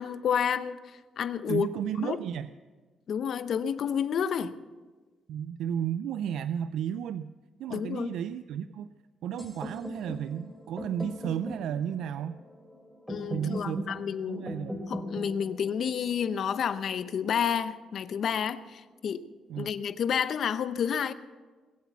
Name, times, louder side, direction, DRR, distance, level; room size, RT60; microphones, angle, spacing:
voice 1, 0.0-1.7 2.0-2.2 3.1-4.5 7.7-8.1 13.1-14.5 14.9-19.2 19.6-21.1, left 8 dB, 60° left, 13 dB, 0.8 m, -30 dB
voice 2, 1.5-2.5 5.3-7.3 7.6-8.9 9.2-12.4 13.3-14.0 14.3-14.8 19.5-19.7, right 9 dB, 80° right, 13 dB, 0.4 m, -33 dB
sound 1, 9.4-17.3, equal, ahead, 2.7 m, -40 dB
21.5 x 8.3 x 7.1 m, 1.3 s
cardioid pair, 90°, 0 cm